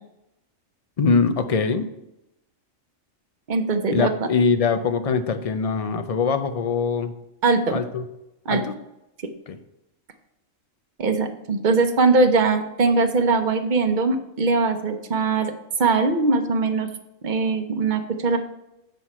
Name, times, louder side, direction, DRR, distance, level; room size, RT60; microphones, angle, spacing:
voice 1, 1.0-1.9 3.9-7.1 7.7-8.0 8.5-8.7 9.5-9.6, left 5 dB, 50° left, 9 dB, 0.4 m, -22 dB
voice 2, 3.5-4.1 7.4-7.8 8.5-8.6 11.0-15.5 15.8-16.9 17.2-18.4, right 3 dB, 45° right, 7 dB, 0.8 m, -21 dB
7.8 x 6.2 x 4.3 m, 0.89 s
omnidirectional pair, 1.4 m